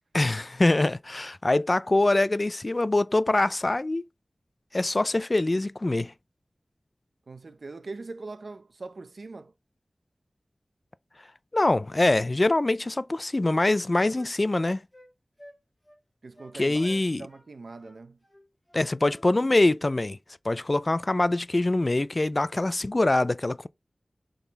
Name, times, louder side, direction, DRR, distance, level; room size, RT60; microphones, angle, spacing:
voice 1, 0.1-4.0 4.7-6.1 11.5-14.8 16.6-17.2 18.7-20.2 20.4-23.7, left 2 dB, 40° left, 0.4 m, -24 dB
voice 2, 7.3-9.5 16.2-18.2, right 3 dB, 75° right, 0.8 m, -42 dB
Wind instrument woodwind instrument, 12.9-13.0 13.3-15.1 15.4-15.6 15.9-16.0 16.4-16.5 16.8-17.5 17.8-19.7, equal, 20° left, 2.6 m, -53 dB
6.7 x 3.9 x 4.5 m
wide cardioid pair, 70°, 0 cm